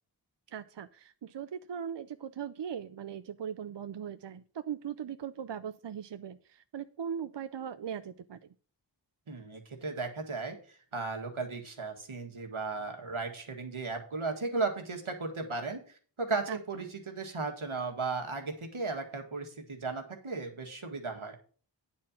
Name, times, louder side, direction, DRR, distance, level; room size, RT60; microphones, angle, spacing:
voice 1, 0.5-8.4 16.5-16.6, right 8 dB, 60° right, 11 dB, 0.5 m, -39 dB
voice 2, 9.3-10.6 10.9-15.8 16.2-21.4, right 3 dB, 90° right, 3 dB, 1.8 m, -35 dB
9.5 x 4.4 x 7.1 m, 0.42 s
wide cardioid pair, 45°, 47 cm